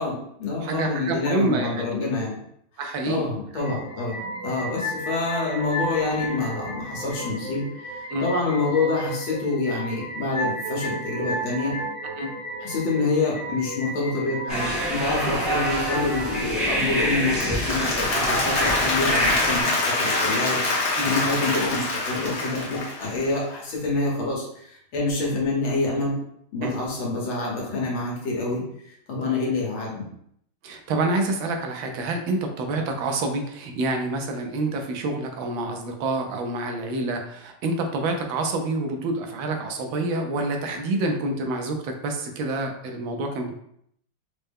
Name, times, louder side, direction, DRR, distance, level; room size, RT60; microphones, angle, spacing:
voice 1, 0.0-2.4 3.1-11.8 12.6-26.2 26.5-30.1, left 3 dB, 75° left, -3 dB, 1.8 m, -27 dB
voice 2, 0.6-2.1 2.8-3.3 8.1-8.3 12.2-12.3 15.2-15.4 21.0-21.2 26.6-26.7 29.2-29.5 30.6-43.5, right 2 dB, 75° right, 4 dB, 1.3 m, -27 dB
sound 1, 3.6-16.4, equal, 55° right, 1.7 m, -33 dB
sound 2, 14.5-19.6, right 1 dB, ahead, 0.6 m, -26 dB
Applause, 17.1-23.4, left 2 dB, 55° left, 1.1 m, -25 dB
4.3 x 2.1 x 3.5 m, 0.71 s
omnidirectional pair, 2.3 m